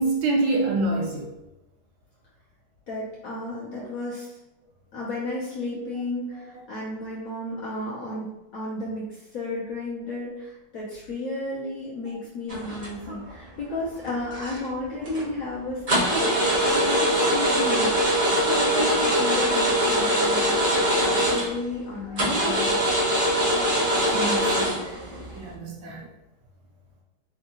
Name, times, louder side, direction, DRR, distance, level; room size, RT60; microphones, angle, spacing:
voice 1, 0.0-1.3 24.0-26.1, right 2 dB, 75° right, 0 dB, 1.1 m, -27 dB
voice 2, 2.9-4.4 4.9-8.3 8.5-16.3 16.6-17.9 18.3-22.8, left 2 dB, 65° left, -6 dB, 0.9 m, -33 dB
sound 1, 12.5-13.3 13.7-14.7 15.0-15.3 15.9-21.7 22.2-25.4, equal, 40° right, 0.5 m, -23 dB
3.6 x 2.3 x 2.8 m, 0.94 s
omnidirectional pair, 2.1 m